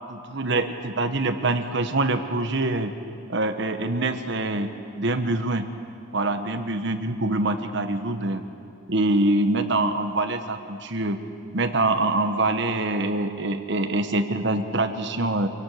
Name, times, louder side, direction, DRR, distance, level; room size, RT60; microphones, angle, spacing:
voice 1, 0.1-2.9 3.3-4.7 5.0-5.6 6.1-8.4 8.9-11.2 11.5-15.5, right 2 dB, 60° right, 8 dB, 1.3 m, -24 dB
26.0 x 17.5 x 6.5 m, 2.4 s
head